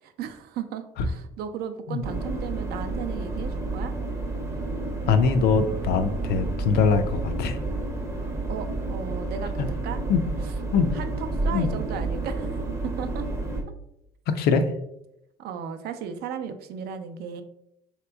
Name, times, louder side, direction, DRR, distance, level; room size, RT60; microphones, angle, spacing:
voice 1, 0.0-3.9 8.5-10.0 10.4-10.5 10.9-13.3 15.4-17.4, right 7 dB, 70° right, 8 dB, 0.4 m, -35 dB
sound 1, 2.0-13.6, right 2 dB, 15° right, 0.6 m, -30 dB
voice 2, 5.1-7.6 10.1-10.2 10.7-10.9 11.5-11.7 14.3-14.6, left 5 dB, 70° left, 9 dB, 0.4 m, -22 dB
3.3 x 2.9 x 2.3 m, 0.82 s
cardioid pair, 110°, 17 cm